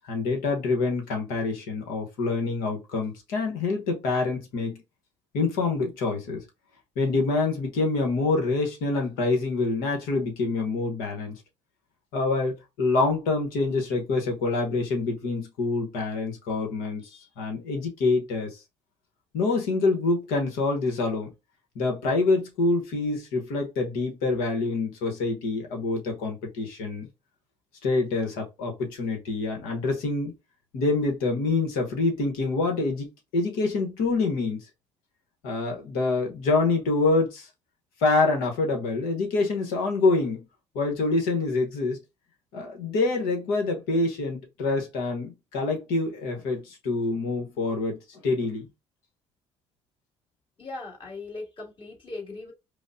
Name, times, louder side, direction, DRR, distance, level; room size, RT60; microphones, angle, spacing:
voice 1, 0.1-4.8 5.3-6.4 7.0-11.4 12.1-18.6 19.3-21.3 21.7-27.1 27.8-30.3 30.7-34.6 35.4-37.5 38.0-40.4 40.7-42.0 42.5-48.7, left 3 dB, 80° left, 1.2 m, -26 dB
voice 2, 50.6-52.5, left 3 dB, 35° left, 2.5 m, -38 dB
5.0 x 2.3 x 2.7 m
hypercardioid pair, 50°, 15 cm